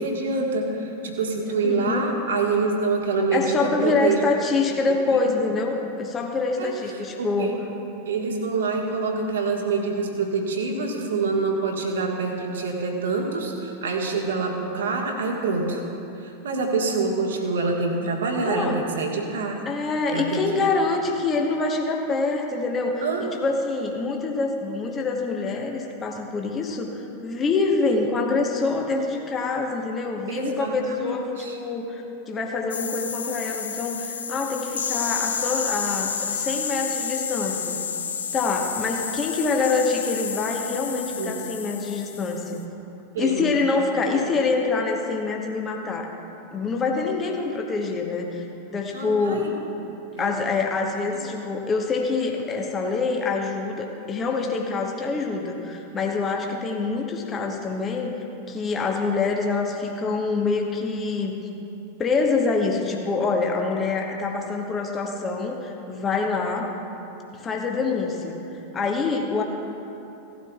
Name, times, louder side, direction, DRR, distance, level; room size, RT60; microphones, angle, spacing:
voice 1, 0.0-4.2 6.6-6.7 7.2-7.5 8.0-15.8 16.2-19.5 20.1-20.6 23.0-23.2 30.3-31.6 40.9-41.4 43.1-43.5 47.2-47.3 48.9-49.6 50.1-50.3, right 3 dB, 60° right, 1 dB, 1.6 m, -26 dB
voice 2, 1.6-2.0 3.3-7.6 18.4-18.8 19.6-37.8 38.3-42.6 43.2-46.1 46.5-48.4 48.7-49.4 50.2-58.1 58.5-61.4 62.0-66.7 67.3-69.4, left 4 dB, 20° left, 1 dB, 1.1 m, -26 dB
sound 1, 32.7-42.6, left 7 dB, 70° left, 0.6 m, -30 dB
17.5 x 12.5 x 2.4 m, 2.9 s
figure-of-eight pair, 90°, 0 cm